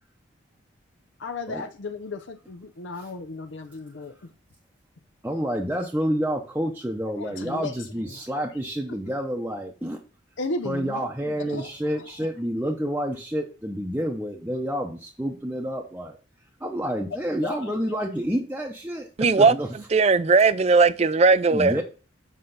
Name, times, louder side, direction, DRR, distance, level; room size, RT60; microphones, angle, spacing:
voice 1, 1.2-4.1 7.1-8.2 10.4-11.0 11.4-12.3 17.4-18.0, left 3 dB, 70° left, 0.6 m, -35 dB
voice 2, 5.2-10.0 10.6-16.2 16.6-19.1 19.4-19.7 21.5-21.8, equal, 10° right, 0.7 m, -29 dB
voice 3, 19.2-19.5 19.9-21.8, right 4 dB, 30° right, 0.4 m, -18 dB
7.8 x 5.3 x 3.8 m
head